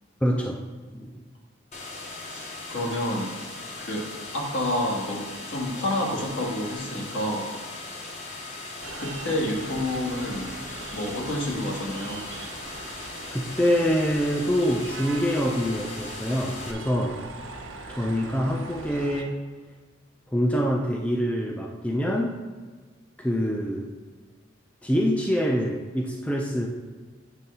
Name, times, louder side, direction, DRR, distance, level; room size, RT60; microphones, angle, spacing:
voice 1, 0.2-0.6 0.9-1.1 13.3-17.2 17.9-19.4 20.3-22.4 23.2-23.9 24.8-26.7, equal, 5° left, 0 dB, 0.4 m, -25 dB
sound 1, 1.7-16.7, left 2 dB, 35° left, 0.8 m, -39 dB
voice 2, 2.3-3.3 3.8-4.1 4.3-7.5 9.0-12.2, left 1 dB, 65° left, -2 dB, 1.7 m, -29 dB
sound 2, 8.8-19.2, right 3 dB, 85° right, 0.9 m, -41 dB
9.1 x 3.4 x 5.5 m, 1.4 s
head